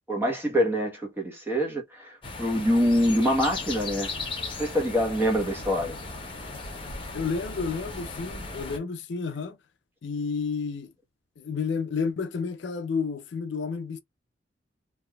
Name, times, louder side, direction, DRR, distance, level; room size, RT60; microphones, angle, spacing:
voice 1, 0.1-4.1 4.6-6.0, equal, 10° right, 1.0 m, -25 dB
sound 1, 2.2-8.8, left 3 dB, 30° left, 0.8 m, -37 dB
voice 2, 7.1-9.6 10.0-10.9 11.4-14.0, left 5 dB, 70° left, 0.4 m, -31 dB
3.4 x 2.5 x 2.2 m
head